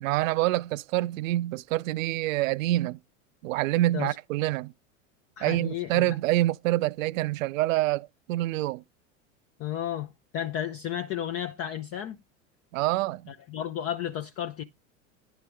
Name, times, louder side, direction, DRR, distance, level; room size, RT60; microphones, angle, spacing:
voice 1, 0.0-3.0 3.4-4.7 5.4-8.8 12.7-13.3, right 16 dB, 70° right, 0.5 m, -26 dB
voice 2, 5.4-6.0 9.6-12.2 13.3-14.6, left 10 dB, 35° left, 0.6 m, -33 dB
10.0 x 5.6 x 3.4 m
hypercardioid pair, 90°, 41 cm